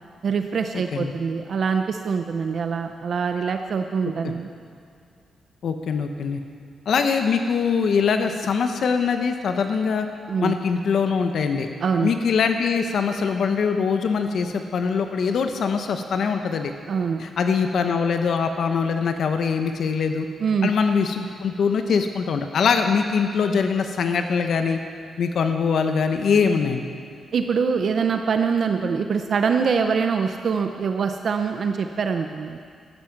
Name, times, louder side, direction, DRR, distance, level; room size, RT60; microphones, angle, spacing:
voice 1, 0.2-4.5 10.3-10.6 11.8-12.1 16.9-17.3 20.4-20.7 27.3-32.6, right 5 dB, 50° right, 6 dB, 0.6 m, -24 dB
voice 2, 5.6-6.4 6.9-10.1 10.4-11.7 12.0-16.7 17.2-20.3 20.6-24.8 25.2-26.8, left 5 dB, 60° left, 6 dB, 0.9 m, -22 dB
14.0 x 12.0 x 6.0 m, 2.3 s
wide cardioid pair, 140°, 0 cm